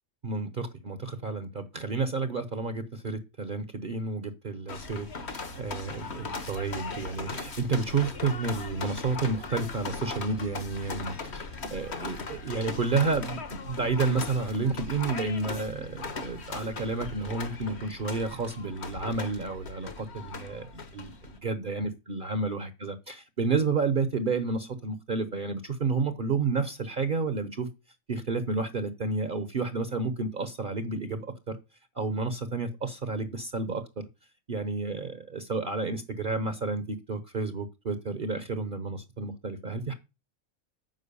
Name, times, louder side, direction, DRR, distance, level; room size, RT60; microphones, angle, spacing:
voice 1, 0.2-27.7 28.1-31.6 31.9-33.8 34.5-39.9, right 4 dB, 40° right, 1.1 m, -31 dB
sound 1, 4.7-21.4, left 4 dB, 55° left, 1.6 m, -39 dB
9.5 x 6.1 x 6.9 m
omnidirectional pair, 1.4 m